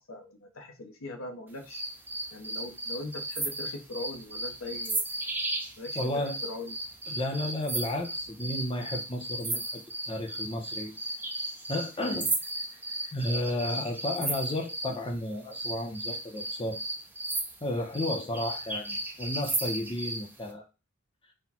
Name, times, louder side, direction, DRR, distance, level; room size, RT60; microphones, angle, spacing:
voice 1, 0.0-1.8 2.3-5.0 5.8-6.8, left 2 dB, 70° left, 4 dB, 0.8 m, -40 dB
sound 1, 1.7-15.0 15.5-20.3, right 2 dB, 10° right, 0.6 m, -35 dB
voice 2, 6.0-6.4 7.1-9.8 10.1-10.9 11.7-12.3 13.1-16.8 17.6-20.6, left 1 dB, 25° left, 2 dB, 0.7 m, -33 dB
4.3 x 2.2 x 4.2 m, 0.29 s
head